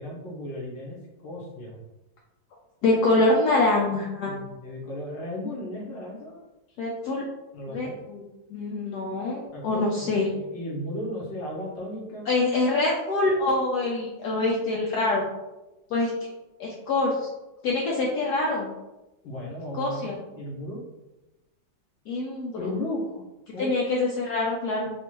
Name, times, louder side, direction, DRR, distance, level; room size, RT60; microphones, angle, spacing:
voice 1, 0.0-1.8 4.2-6.4 7.5-8.0 9.5-12.3 19.2-20.8 22.6-23.3 23.5-23.7, left 1 dB, 90° left, -4 dB, 1.8 m, -35 dB
voice 2, 2.8-4.4 6.8-7.2 7.7-8.2 8.5-10.3 12.3-15.3 15.9-16.1 16.6-17.3 17.6-18.7 19.8-20.1 22.1-22.6 23.6-24.9, left 2 dB, 70° left, -2 dB, 1.0 m, -25 dB
4.3 x 2.4 x 3.0 m, 1.0 s
omnidirectional pair, 2.0 m